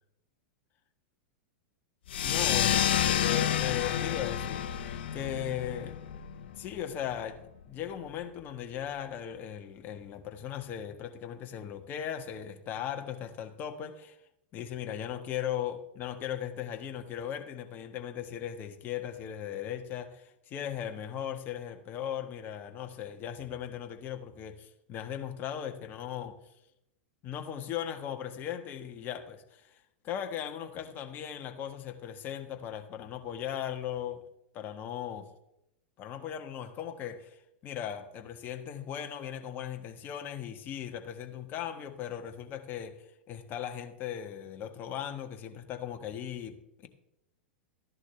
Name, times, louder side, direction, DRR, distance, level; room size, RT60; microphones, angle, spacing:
sound 1, 2.1-7.2, left 10 dB, 70° left, 0.9 m, -29 dB
voice 1, 2.2-6.0 6.6-14.2 14.5-26.4 27.2-29.8 30.0-34.2 34.5-35.3 36.0-37.4 37.6-43.0 43.3-46.9, left 9 dB, 35° left, 1.5 m, -38 dB
13.5 x 11.0 x 3.3 m
hypercardioid pair, 105°, 6 cm